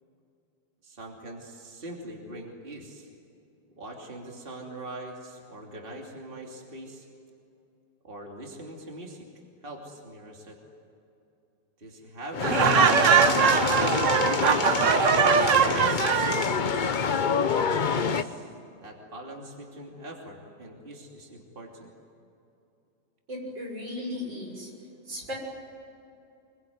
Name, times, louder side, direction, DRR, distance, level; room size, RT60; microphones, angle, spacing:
voice 1, 0.8-3.1 3.7-7.1 8.0-9.3 9.6-10.6 11.8-14.6 15.5-18.5 18.8-21.9, right 1 dB, 30° right, 0 dB, 3.1 m, -42 dB
sound 1, 12.3-18.2, left 6 dB, 50° left, 0.5 m, -26 dB
Laughter, 12.4-16.5, right 8 dB, 55° right, 0.9 m, -22 dB
voice 2, 23.3-24.7 25.1-25.3, left 1 dB, 85° right, 0 dB, 6.9 m, -36 dB
25.5 x 23.0 x 9.4 m, 2.7 s
omnidirectional pair, 2.0 m